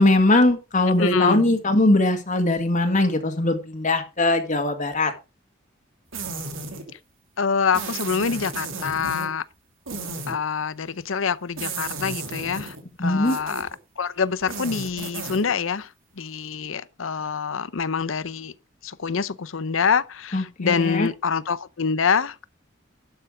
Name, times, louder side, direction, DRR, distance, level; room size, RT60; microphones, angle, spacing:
voice 1, 0.0-5.1 13.0-13.4 20.3-21.1, left 2 dB, 40° left, 1.9 m, -20 dB
voice 2, 1.0-1.5 7.4-9.4 10.3-12.7 13.0-13.7 14.0-15.9 16.2-18.5 18.8-22.4, left 6 dB, 85° left, 0.7 m, -25 dB
sound 1, 6.1-6.9 7.7-9.3 9.9-10.4 11.6-12.8 13.2-13.8 14.4-15.5, right 4 dB, 90° right, 2.6 m, -33 dB
11.5 x 6.9 x 4.9 m
head